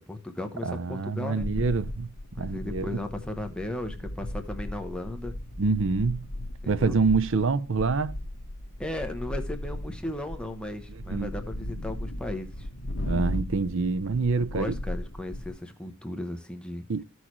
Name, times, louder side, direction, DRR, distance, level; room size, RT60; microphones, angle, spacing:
voice 1, 0.0-1.5 2.4-5.3 6.6-7.0 8.8-12.7 14.4-16.8, left 1 dB, 5° left, 0.9 m, -36 dB
voice 2, 0.6-3.0 5.6-6.3 6.7-8.2 10.9-11.3 13.0-14.7 16.9-17.0, right 4 dB, 60° right, 0.6 m, -26 dB
sound 1, 1.4-15.6, left 1 dB, 75° left, 1.2 m, -36 dB
14.5 x 6.3 x 3.0 m
head